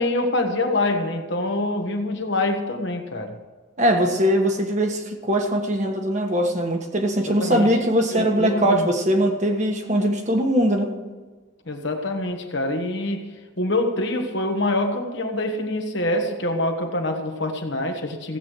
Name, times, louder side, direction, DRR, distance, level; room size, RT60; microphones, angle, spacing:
voice 1, 0.0-3.3 7.3-7.7 8.1-8.9 11.7-13.2 13.6-18.4, left 2 dB, 60° left, 1.5 m, -25 dB
voice 2, 3.8-10.9, equal, 35° right, 1.4 m, -21 dB
16.0 x 8.3 x 4.7 m
head